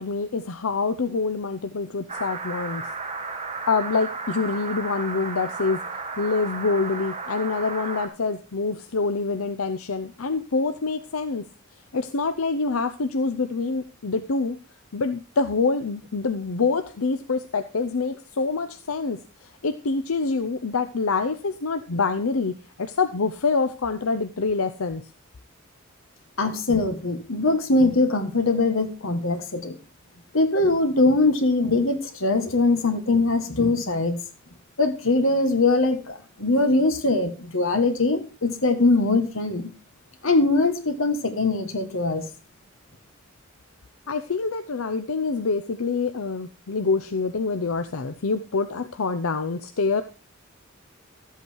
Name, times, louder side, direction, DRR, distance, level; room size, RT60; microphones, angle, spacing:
voice 1, 0.0-2.8 3.7-5.8 6.2-11.4 11.9-14.6 14.9-25.0 44.1-50.0, left 4 dB, 90° left, 9 dB, 0.7 m, -26 dB
sound 1, 2.1-8.1, right 4 dB, 30° right, 1.4 m, -33 dB
voice 2, 26.4-29.7 30.3-34.2 34.8-39.7 40.2-42.3, left 2 dB, 70° left, 7 dB, 1.8 m, -22 dB
12.5 x 8.1 x 4.6 m, 0.34 s
head